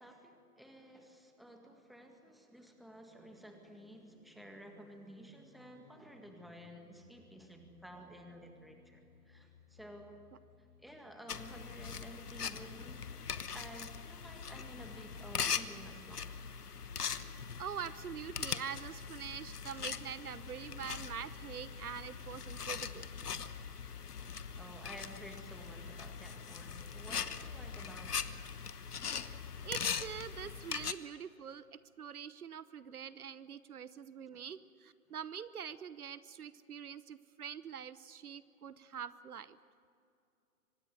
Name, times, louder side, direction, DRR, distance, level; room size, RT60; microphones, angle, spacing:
voice 1, 0.0-10.2 10.8-16.2 24.6-28.3 28.9-29.1 34.3-34.4, equal, ahead, 3 dB, 1.8 m, -53 dB
sound 1, 3.1-15.8, left 2 dB, 20° right, 7.7 m, -65 dB
sound 2, 11.3-30.9, left 6 dB, 80° left, 1.3 m, -41 dB
voice 2, 17.1-23.1 29.6-39.6, right 8 dB, 70° right, 16 dB, 1.0 m, -45 dB
25.0 x 20.0 x 7.8 m, 2.6 s
hypercardioid pair, 135°, 45 cm